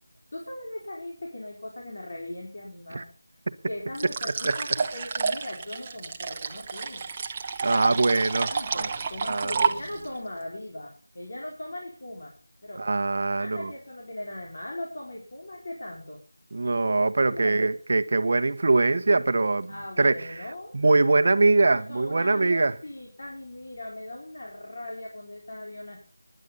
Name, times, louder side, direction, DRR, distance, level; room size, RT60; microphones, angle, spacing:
voice 1, 0.3-3.1 3.7-7.1 7.9-8.0 8.4-12.3 12.6-12.9 13.4-16.2 17.3-17.7 19.7-20.7 21.6-26.0, left 1 dB, 50° left, 4.5 m, -39 dB
sound 1, 3.9-10.2, right 5 dB, 20° right, 1.0 m, -30 dB
voice 2, 7.6-8.9 9.3-9.6 12.8-13.7 16.5-20.4 20.7-22.7, right 3 dB, 45° right, 1.2 m, -23 dB
19.0 x 10.5 x 5.6 m
figure-of-eight pair, 170°, 0 cm